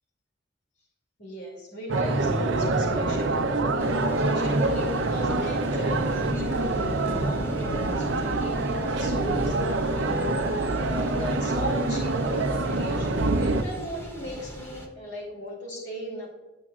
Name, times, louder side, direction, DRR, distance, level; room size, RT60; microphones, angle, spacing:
voice 1, 1.2-3.9 4.3-16.3, equal, 65° left, -1 dB, 2.6 m, -38 dB
sound 1, 1.9-13.6, right 2 dB, 85° right, 0.7 m, -26 dB
Thunder / Rain, 3.8-14.9, equal, 15° left, 1.0 m, -38 dB
9.9 x 8.3 x 2.4 m, 1.2 s
head